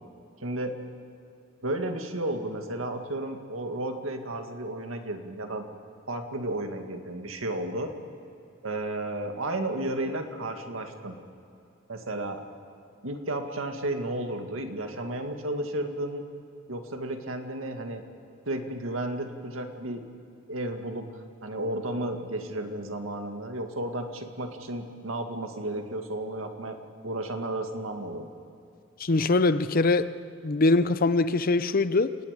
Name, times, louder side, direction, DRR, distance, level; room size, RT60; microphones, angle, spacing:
voice 1, 0.4-0.8 1.6-5.6 6.1-7.9 8.6-11.2 11.9-12.4 13.0-16.2 16.7-18.0 18.5-20.0 20.5-26.8 27.0-28.3, right 1 dB, 85° right, 2.0 m, -33 dB
voice 2, 29.0-30.1 30.4-32.2, left 3 dB, 45° left, 0.6 m, -23 dB
29.5 x 18.5 x 5.2 m
head